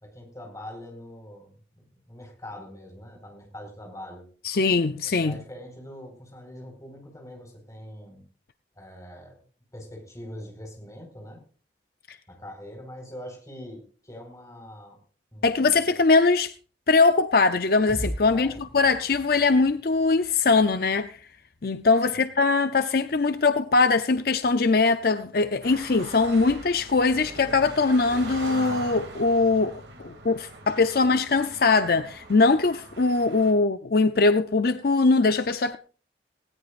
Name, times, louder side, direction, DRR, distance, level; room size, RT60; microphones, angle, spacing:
voice 1, 0.0-4.3 5.2-8.2 8.7-9.4 9.7-11.4 12.3-15.0 15.3-15.9 18.2-18.6 22.1-22.3, left 1 dB, 20° left, 4.7 m, -43 dB
voice 2, 4.4-5.4 12.1-12.2 15.4-16.5 16.9-21.2 21.6-35.8, left 3 dB, 55° left, 0.6 m, -21 dB
sound 1, 17.9-21.8, equal, 10° right, 3.2 m, -39 dB
sound 2, 25.6-33.5, right 2 dB, 75° right, 2.6 m, -41 dB
18.5 x 17.0 x 2.5 m
head